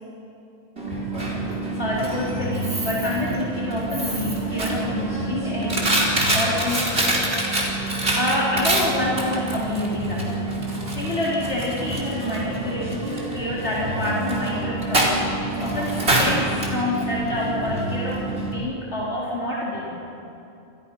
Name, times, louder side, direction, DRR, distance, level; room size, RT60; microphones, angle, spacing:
Coin (dropping), 0.8-18.5, right 1 dB, 70° right, 4.5 m, -26 dB
voice 1, 1.2-6.0 6.3-7.3 8.2-10.6 11.0-15.2 15.6-20.1, left 1 dB, 80° left, -6 dB, 4.6 m, -27 dB
28.5 x 28.5 x 5.8 m, 2.7 s
omnidirectional pair, 1.1 m